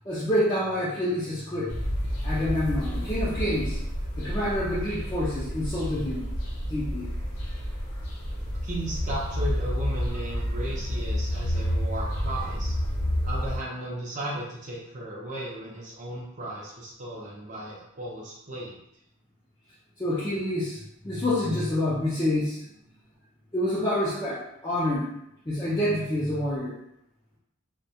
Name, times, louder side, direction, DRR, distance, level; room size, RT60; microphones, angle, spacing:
voice 1, 0.1-1.8 2.2-3.8 4.2-6.3 6.6-7.1 20.0-20.8 21.0-22.6 23.5-25.1 25.5-26.7, left 1 dB, 20° left, -10 dB, 0.4 m, -27 dB
sound 1, 1.7-13.6, equal, 90° left, 0.6 m, -30 dB
voice 2, 8.6-12.8 13.2-18.7, right 1 dB, 35° right, -6 dB, 0.5 m, -35 dB
2.2 x 2.1 x 2.7 m, 0.78 s
head